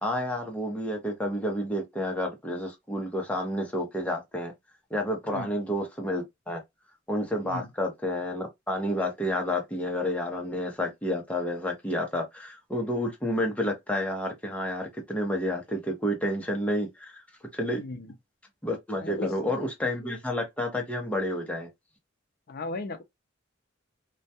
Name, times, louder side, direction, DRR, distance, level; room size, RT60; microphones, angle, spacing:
voice 1, 0.0-4.5 4.9-6.6 7.1-17.2 17.5-17.8 18.6-21.7, left 1 dB, 5° left, 0.6 m, -30 dB
voice 2, 17.8-18.1 19.0-19.6 22.5-23.0, left 3 dB, 50° left, 0.4 m, -36 dB
2.2 x 2.2 x 2.6 m
head